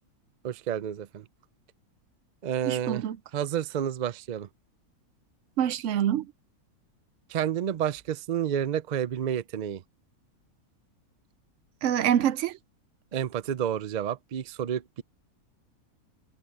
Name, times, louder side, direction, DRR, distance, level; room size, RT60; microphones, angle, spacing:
voice 1, 0.4-1.3 2.4-3.1 3.3-4.5 7.3-9.8 13.1-15.0, right 9 dB, 85° right, 0.3 m, -30 dB
voice 2, 2.7-3.2 5.6-6.3 11.8-12.6, right 10 dB, 65° right, 0.8 m, -25 dB
omnidirectional pair, 1.6 m